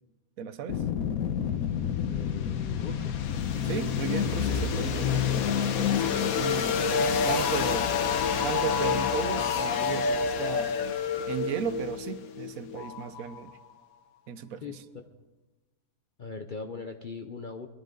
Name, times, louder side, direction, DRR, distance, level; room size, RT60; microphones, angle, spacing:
voice 1, 0.4-0.8 3.6-6.8 7.2-7.9 8.4-10.8 11.3-13.6 14.3-14.8, right 7 dB, 65° right, 13 dB, 1.2 m, -35 dB
sound 1, 0.7-13.5, left 6 dB, 70° left, 1.3 m, -28 dB
voice 2, 2.1-3.2 14.6-14.8 16.2-17.7, left 4 dB, 40° left, 4 dB, 0.8 m, -40 dB
21.0 x 13.0 x 3.9 m, 1.2 s
omnidirectional pair, 1.6 m